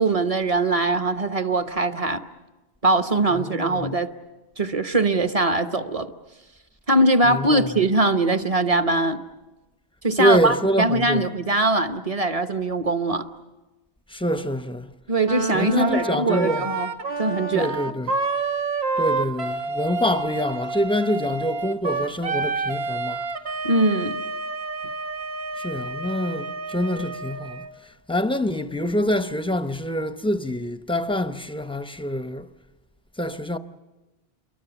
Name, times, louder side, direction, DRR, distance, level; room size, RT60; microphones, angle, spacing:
voice 1, 0.0-2.2 2.8-4.1 4.6-6.1 6.9-9.2 10.0-13.3 15.1-16.9 17.2-17.7 23.6-24.2, right 2 dB, 35° right, 1.0 m, -21 dB
voice 2, 3.3-4.0 7.2-7.9 10.2-11.3 14.1-14.9 15.5-16.7 17.5-18.2 19.0-23.2 25.6-32.5 33.2-33.6, equal, 5° left, 0.7 m, -26 dB
Wind instrument woodwind instrument, 15.2-27.7, right 3 dB, 85° right, 1.3 m, -29 dB
28.0 x 23.5 x 7.0 m
omnidirectional pair, 1.0 m